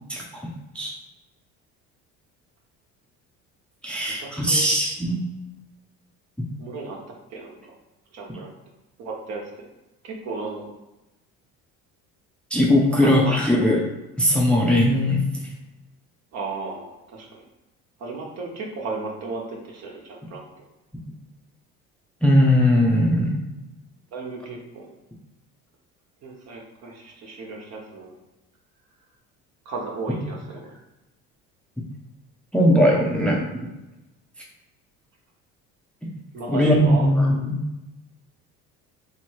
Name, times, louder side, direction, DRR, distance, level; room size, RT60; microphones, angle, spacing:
voice 1, 0.1-0.9 3.8-5.2 6.4-6.5 12.5-13.8 14.2-15.2 22.2-23.4 30.1-30.2 32.5-33.5 36.5-37.6, left 1 dB, 5° left, -2 dB, 0.6 m, -19 dB
voice 2, 4.2-4.6 6.6-7.0 7.3-7.6 8.1-8.5 9.0-9.7 10.0-10.7 13.0-13.3 16.3-17.4 18.0-20.4 24.1-24.9 26.2-28.2 29.6-30.7 36.3-37.1, right 3 dB, 60° right, -1 dB, 1.2 m, -34 dB
3.2 x 3.0 x 4.6 m, 0.99 s
cardioid pair, 145°, 30 cm